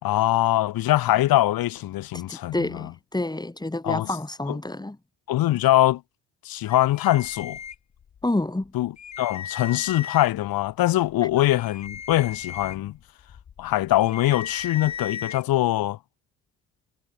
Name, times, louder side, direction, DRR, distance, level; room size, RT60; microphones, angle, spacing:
voice 1, 0.0-2.9 3.8-4.1 4.5-4.6 5.3-6.0 6.4-7.6 8.7-13.0 13.6-16.0, left 15 dB, 65° left, 1.8 m, -23 dB
voice 2, 2.1-5.0 8.2-8.7, left 2 dB, 10° left, 2.2 m, -28 dB
sound 1, 6.7-8.2 8.6-8.7 9.0-10.5 11.0-15.4, left 8 dB, 45° left, 1.9 m, -37 dB
hypercardioid pair, 40°, 38 cm